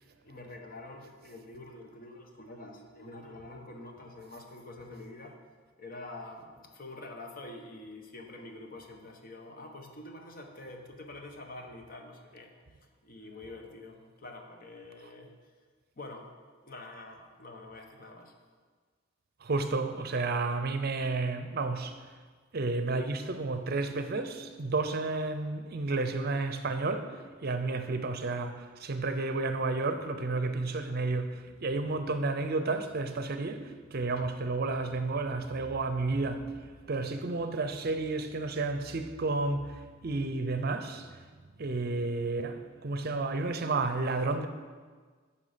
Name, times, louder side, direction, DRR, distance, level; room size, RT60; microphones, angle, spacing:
voice 1, 0.2-5.4 5.8-12.5 13.0-15.4 16.0-16.3 16.6-18.3, left 2 dB, 45° left, 1.0 m, -46 dB
voice 2, 19.4-22.0 22.5-36.5 36.9-41.2 41.6-44.5, right 3 dB, 50° right, 0.6 m, -31 dB
9.6 x 5.8 x 5.0 m
head